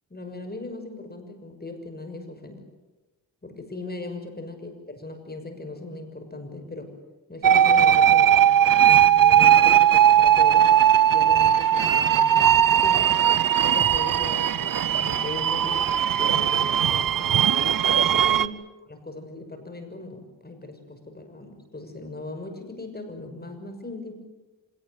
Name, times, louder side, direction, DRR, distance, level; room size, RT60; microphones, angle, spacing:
voice 1, 0.1-2.6 3.4-4.7 5.0-6.9 7.3-10.8 11.1-13.1 13.6-15.9 16.2-18.5 18.9-24.1, left 2 dB, 20° left, 6 dB, 6.4 m, -38 dB
sound 1, 7.4-18.5, right 9 dB, 50° right, 0.9 m, -18 dB
26.5 x 18.5 x 9.7 m, 1.1 s
cardioid pair, 75°, 43 cm